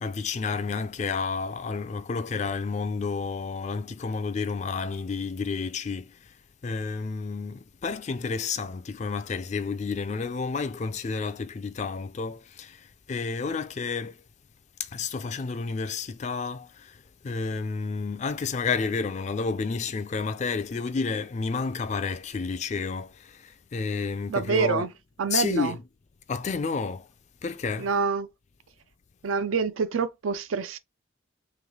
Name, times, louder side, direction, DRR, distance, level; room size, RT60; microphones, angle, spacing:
voice 1, 0.0-6.1 6.6-12.8 13.1-14.1 14.9-16.7 17.2-23.1 23.7-24.9 25.3-25.8 26.3-27.0 27.4-27.9, left 4 dB, 35° left, 0.3 m, -30 dB
voice 2, 24.3-24.9 25.2-25.8 27.8-28.3 29.2-30.8, right 5 dB, 85° right, 0.5 m, -26 dB
3.1 x 3.1 x 3.7 m
head